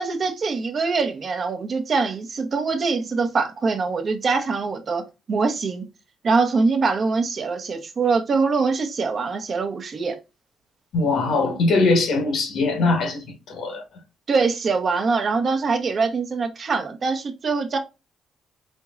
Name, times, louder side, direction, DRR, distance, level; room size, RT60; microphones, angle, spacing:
voice 1, 0.0-5.0 5.3-5.9 6.2-10.2 14.3-17.8, right 4 dB, 45° right, 0.7 m, -23 dB
voice 2, 10.9-13.8, left 3 dB, 70° left, 1.1 m, -21 dB
4.4 x 2.9 x 2.3 m
cardioid pair, 90°, 0 cm